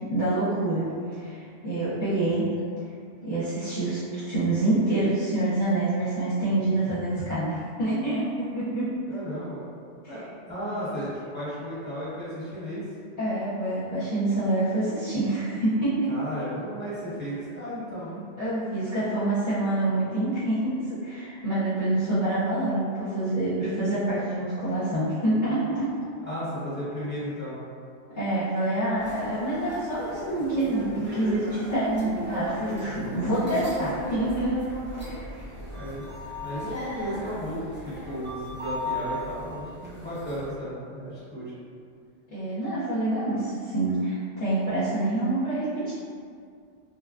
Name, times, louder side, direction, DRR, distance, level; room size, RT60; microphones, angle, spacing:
voice 1, 0.0-2.5 3.2-8.9 10.0-10.1 13.2-16.1 18.4-20.7 21.0-25.9 28.1-34.5 34.9-35.5 42.3-45.9, right 2 dB, 45° left, -14 dB, 0.8 m, -27 dB
voice 2, 9.1-9.6 10.1-12.8 16.1-18.3 26.2-27.6 32.9-33.1 35.7-36.0 36.4-41.5, equal, 10° left, -11 dB, 1.1 m, -34 dB
sound 1, 29.0-40.5, equal, 15° right, 0.3 m, -36 dB
3.3 x 2.2 x 2.4 m, 2.3 s
omnidirectional pair, 1.2 m